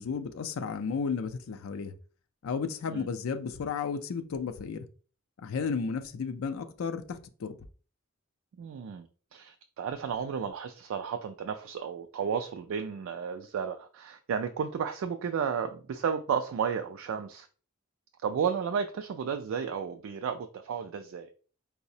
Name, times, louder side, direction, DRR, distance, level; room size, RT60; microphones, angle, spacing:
voice 1, 0.0-1.9 2.4-4.9 5.4-7.6, left 5 dB, 70° left, 0.4 m, -33 dB
voice 2, 8.6-17.5 18.2-21.3, right 7 dB, 65° right, 0.3 m, -33 dB
4.7 x 2.0 x 2.6 m
head